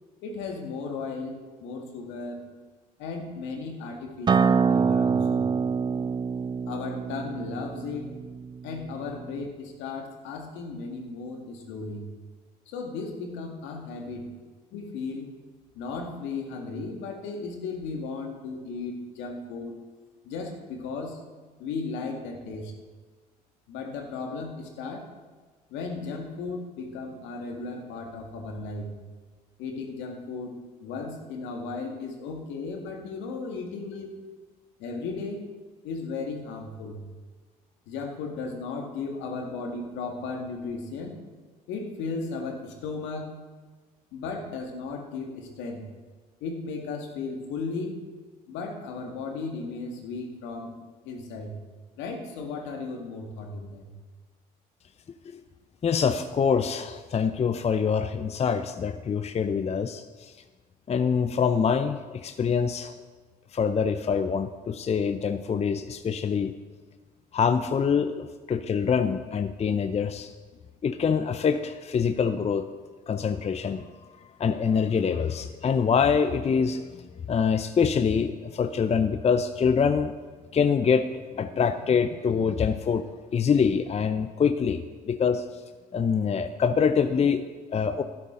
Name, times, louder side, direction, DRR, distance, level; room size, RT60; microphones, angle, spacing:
voice 1, 0.2-2.4 3.0-5.5 6.7-8.1 8.6-12.1 12.7-14.3 14.7-15.3 15.8-19.8 20.2-21.2 21.6-22.7 23.7-25.0 25.7-29.0 29.6-34.2 34.8-35.5 35.8-37.0 37.9-41.2 41.7-43.3 44.1-45.9 46.4-48.0 48.5-50.7 51.0-51.6 52.0-53.9, left 4 dB, 70° left, 2 dB, 1.9 m, -35 dB
Acoustic guitar, 4.3-9.5, right 5 dB, 25° right, 0.3 m, -26 dB
voice 2, 55.8-60.4 60.9-62.9 63.5-66.5 67.3-70.3 70.8-72.7 73.1-73.8 74.4-80.1 80.5-85.6 85.9-88.0, left 6 dB, 35° left, 10 dB, 0.6 m, -25 dB
12.0 x 11.0 x 3.9 m, 1.4 s
hypercardioid pair, 60°, 20 cm